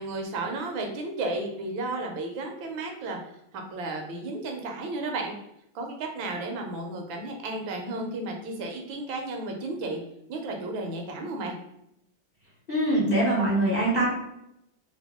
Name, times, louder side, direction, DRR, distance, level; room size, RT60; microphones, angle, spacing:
voice 1, 0.0-3.2 3.7-5.3 5.7-10.0 10.3-11.6, right 2 dB, 80° right, 2 dB, 1.4 m, -33 dB
voice 2, 12.7-14.1, right 1 dB, 35° left, -7 dB, 0.6 m, -23 dB
3.4 x 2.2 x 3.4 m, 0.80 s
omnidirectional pair, 2.2 m